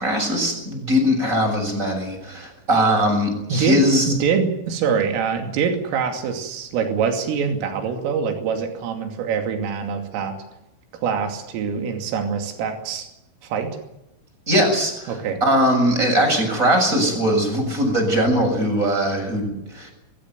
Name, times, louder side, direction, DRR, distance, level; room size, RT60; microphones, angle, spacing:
voice 1, 0.0-4.1 14.5-15.1 15.4-19.9, equal, 15° right, 4 dB, 7.1 m, -20 dB
voice 2, 3.5-10.3 11.0-13.1 13.4-13.7 15.1-15.4, right 6 dB, 85° right, 5 dB, 5.1 m, -24 dB
24.0 x 15.5 x 9.6 m, 0.87 s
omnidirectional pair, 5.8 m